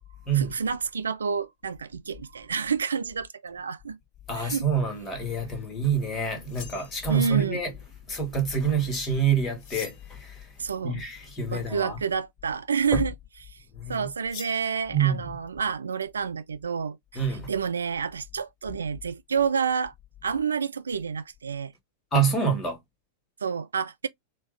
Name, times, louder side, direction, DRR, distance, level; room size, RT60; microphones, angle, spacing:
voice 1, 0.3-4.0 4.3-4.7 7.1-7.6 10.6-11.0 11.5-13.1 13.9-17.0 17.5-19.9 20.2-21.7 23.4-24.1, right 6 dB, 70° right, 0.3 m, -29 dB
voice 2, 4.3-7.7 8.1-10.5 10.8-12.0 12.9-13.0 13.7-14.1 14.9-15.2 17.1-17.5 22.1-22.8, right 5 dB, 20° left, 1.7 m, -27 dB
sound 1, 6.4-7.4 9.6-10.3 14.3-14.7, left 6 dB, 40° left, 1.2 m, -43 dB
4.2 x 2.4 x 3.2 m
figure-of-eight pair, 90°, 0 cm